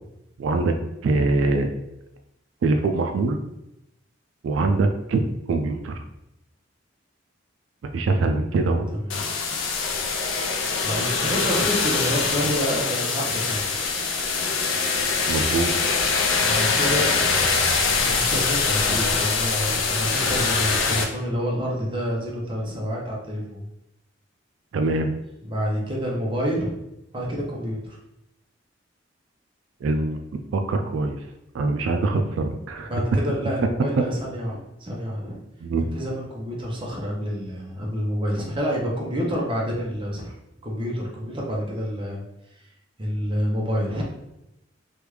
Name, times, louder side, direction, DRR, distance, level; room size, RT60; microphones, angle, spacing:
voice 1, 0.4-0.7 1.0-1.7 2.6-3.4 4.4-5.9 7.9-8.9 15.3-16.0 24.7-25.1 29.8-30.2 30.5-31.2 31.5-32.9 35.6-35.8, right 3 dB, 85° right, 6 dB, 0.3 m, -23 dB
voice 2, 8.9-9.2 10.8-13.7 16.4-17.2 18.0-23.6 25.4-26.7 27.1-28.0 32.9-35.4 35.9-40.3 40.6-42.2 43.0-44.1, equal, 25° right, -3 dB, 0.7 m, -28 dB
sound 1, 9.1-21.0, left 4 dB, 90° left, 0.5 m, -23 dB
3.4 x 2.3 x 3.1 m, 0.88 s
head